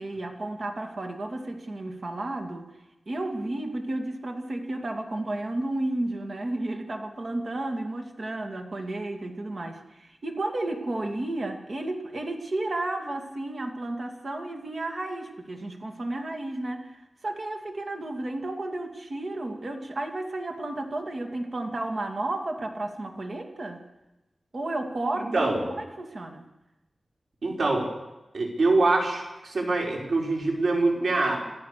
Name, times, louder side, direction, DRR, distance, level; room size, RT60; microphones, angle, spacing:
voice 1, 0.0-2.7 3.1-23.8 24.5-26.4, right 2 dB, 50° right, 4 dB, 2.5 m, -32 dB
voice 2, 25.2-25.6 27.4-27.9 28.3-31.4, right 2 dB, 85° right, -1 dB, 5.2 m, -24 dB
27.5 x 14.0 x 6.8 m, 1.0 s
wide cardioid pair, 115°, 0 cm